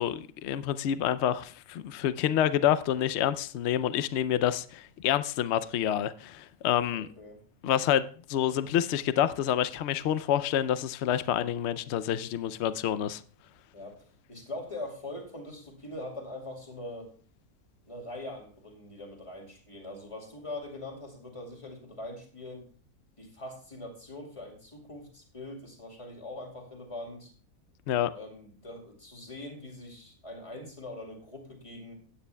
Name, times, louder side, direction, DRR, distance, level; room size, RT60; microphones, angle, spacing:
voice 1, 0.0-7.1 7.6-13.2 27.9-28.1, left 10 dB, 65° left, 0.8 m, -28 dB
voice 2, 6.9-7.4 13.7-17.1 17.8-22.6 23.2-27.3 28.1-31.9, left 1 dB, 20° left, 2.4 m, -42 dB
15.5 x 9.6 x 2.2 m
omnidirectional pair, 1.5 m